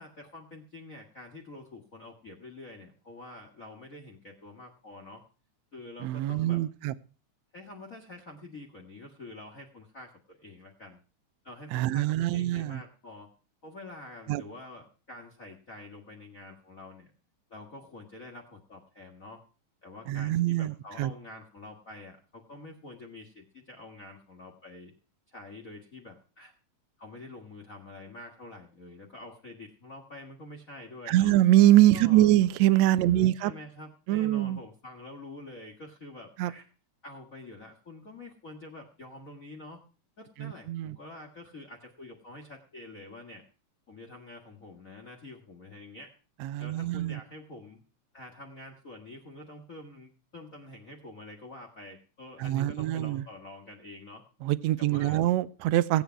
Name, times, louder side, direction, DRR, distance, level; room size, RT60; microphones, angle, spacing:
voice 1, 0.0-5.2 5.7-6.6 7.5-11.0 11.4-13.3 13.6-17.1 17.5-19.4 19.8-24.9 25.3-26.5 27.0-31.3 31.9-32.3 33.0-36.6 37.0-39.8 40.2-43.4 43.9-46.1 46.6-47.8 48.1-54.2 54.8-55.2, left 2 dB, 35° left, 1 dB, 1.7 m, -47 dB
voice 2, 6.0-6.9 11.7-12.8 14.3-14.4 20.1-21.1 31.1-33.5 34.1-34.6 36.4-36.5 40.4-41.0 46.4-47.2 52.4-53.2 54.4-56.0, right 14 dB, 75° right, 16 dB, 1.8 m, -24 dB
18.0 x 8.9 x 4.6 m, 0.37 s
omnidirectional pair, 3.5 m